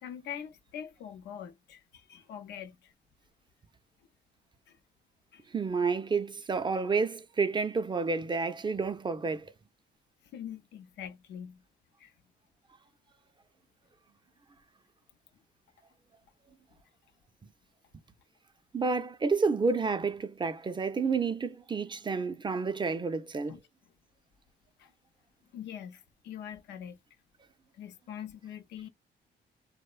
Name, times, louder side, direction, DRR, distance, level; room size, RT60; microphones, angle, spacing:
voice 1, 0.0-2.9 4.7-4.8 5.3-5.5 10.3-11.6 12.0-12.1 23.5-23.6 24.8-24.9 25.5-27.0 27.7-28.9, left 9 dB, 90° left, 0.5 m, -43 dB
voice 2, 5.5-9.5 18.7-23.6, right 4 dB, 25° right, 0.4 m, -30 dB
2.9 x 2.0 x 2.3 m
cardioid pair, 75°, 18 cm